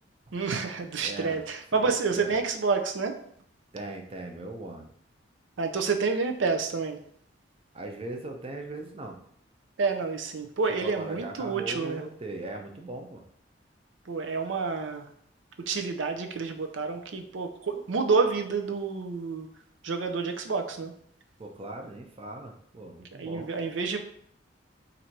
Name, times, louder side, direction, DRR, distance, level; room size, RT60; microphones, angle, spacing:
voice 1, 0.3-3.2 5.6-7.0 9.8-12.0 14.1-15.1 15.7-19.5 19.8-20.9 23.2-24.0, right 4 dB, 85° right, 5 dB, 0.5 m, -29 dB
voice 2, 1.0-1.4 1.7-2.3 3.7-4.9 7.7-9.2 10.8-13.2 21.4-23.5, right 2 dB, 30° right, 2 dB, 0.6 m, -39 dB
4.2 x 2.6 x 4.5 m, 0.64 s
head